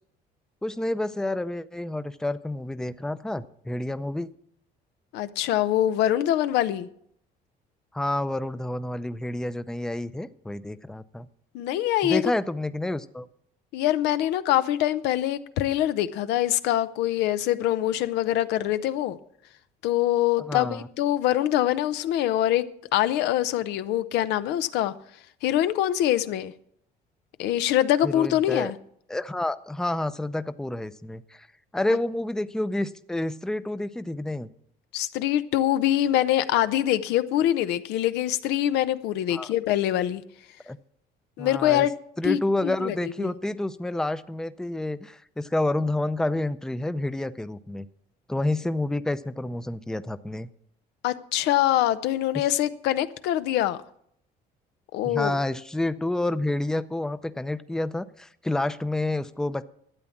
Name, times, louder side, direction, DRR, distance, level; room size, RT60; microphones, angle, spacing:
voice 1, 0.6-4.3 7.9-11.3 12.0-13.3 20.4-20.9 28.0-28.7 29.1-31.5 31.7-34.5 39.3-39.5 40.7-40.8 41.4-41.9 42.2-47.9 48.3-50.5 55.0-59.6, left 1 dB, 5° left, 0.5 m, -29 dB
voice 2, 5.1-6.9 11.5-12.3 13.7-19.2 19.8-22.6 22.9-24.9 25.4-26.5 27.4-28.8 34.9-40.2 41.4-41.9 42.2-43.3 51.0-53.8 54.9-55.4, left 12 dB, 90° left, 0.7 m, -24 dB
12.5 x 8.5 x 7.2 m
cardioid pair, 110°, 17 cm